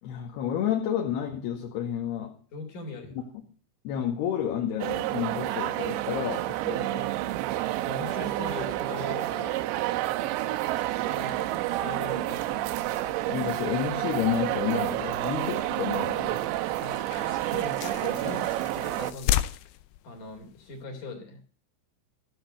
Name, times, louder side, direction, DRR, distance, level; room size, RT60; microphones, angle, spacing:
voice 1, 0.0-2.3 3.1-3.2 3.8-7.1 13.3-16.4 18.2-18.4, left 9 dB, 65° left, 1 dB, 3.6 m, -30 dB
voice 2, 2.5-3.2 7.8-9.6 10.4-10.5 11.0-12.7 13.2-13.3 16.7-18.5 18.7-19.7 20.0-21.4, left 3 dB, 45° left, 2 dB, 4.5 m, -40 dB
sound 1, 4.8-19.1, right 15 dB, 80° right, 2.9 m, -29 dB
sound 2, 10.7-20.8, left 14 dB, 85° left, 3.2 m, -37 dB
15.5 x 7.9 x 7.8 m, 0.41 s
omnidirectional pair, 5.4 m